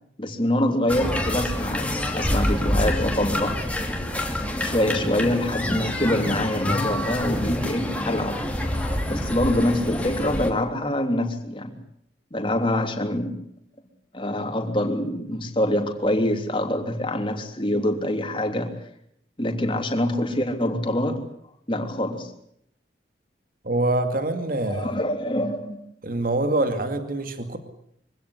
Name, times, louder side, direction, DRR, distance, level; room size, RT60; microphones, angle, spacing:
voice 1, 0.2-3.6 4.5-8.4 9.1-11.8 12.3-13.4 14.1-18.7 19.4-21.2 21.7-22.3 24.7-25.8, left 1 dB, 30° left, 4 dB, 3.3 m, -25 dB
sound 1, 0.9-10.5, left 1 dB, 10° left, 3.0 m, -27 dB
voice 2, 23.6-24.9 26.0-27.6, right 2 dB, 55° right, 8 dB, 2.3 m, -25 dB
24.0 x 16.5 x 9.9 m, 0.72 s
head